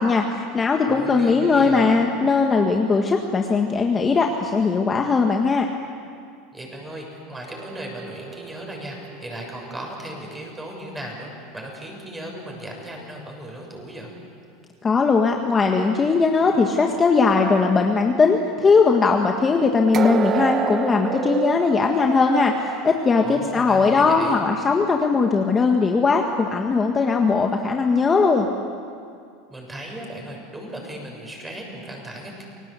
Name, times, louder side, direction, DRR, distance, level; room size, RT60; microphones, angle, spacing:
voice 1, 0.0-5.7 14.8-28.5, left 4 dB, 20° left, 3 dB, 1.6 m, -19 dB
voice 2, 0.8-2.0 6.5-14.1 23.2-24.4 29.5-32.4, right 1 dB, 10° right, 1 dB, 7.0 m, -36 dB
sound 1, 7.5-10.6 19.9-23.8 24.2-24.4 25.0-25.1, right 7 dB, 35° right, 1.3 m, -30 dB
29.0 x 18.5 x 8.3 m, 2.3 s
supercardioid pair, 120°, 0 cm